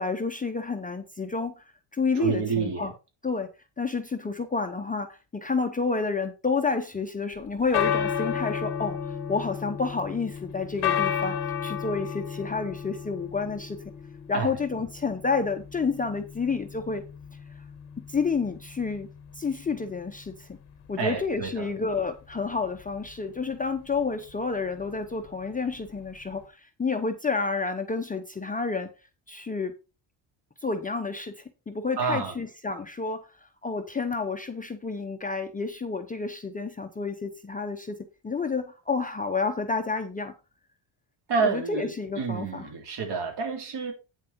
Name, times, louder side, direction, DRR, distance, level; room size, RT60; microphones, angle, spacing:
voice 1, 0.0-1.6 1.9-2.9 3.2-3.5 3.8-11.4 11.6-13.8 14.3-17.1 18.1-19.1 19.4-20.6 20.9-28.9 29.3-29.8 30.6-33.3 33.6-37.9 38.2-40.3 41.4-42.7, left 4 dB, 15° left, 0.7 m, -30 dB
voice 2, 2.2-2.9 14.3-14.5 21.0-21.7 32.0-32.3 41.3-43.9, right 5 dB, 50° right, 3.7 m, -29 dB
sound 1, 7.4-26.4, left 8 dB, 50° left, 1.5 m, -34 dB
8.9 x 7.4 x 4.4 m
cardioid pair, 160°, 50 cm